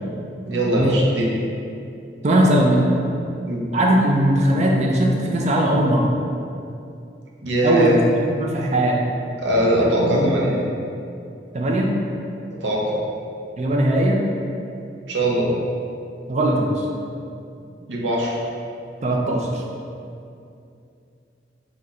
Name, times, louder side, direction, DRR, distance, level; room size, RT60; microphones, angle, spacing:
voice 1, 0.4-1.3 3.4-3.7 7.4-7.9 9.4-10.5 12.5-13.0 15.1-15.5 17.9-18.4, right 1 dB, 85° right, -3 dB, 0.6 m, -21 dB
voice 2, 2.2-2.8 3.7-6.1 7.6-7.9 8.2-9.0 9.8-10.6 11.5-11.9 13.6-14.2 16.3-16.9 19.0-19.6, right 1 dB, 40° right, -1 dB, 0.4 m, -19 dB
5.5 x 2.1 x 2.4 m, 2.6 s
head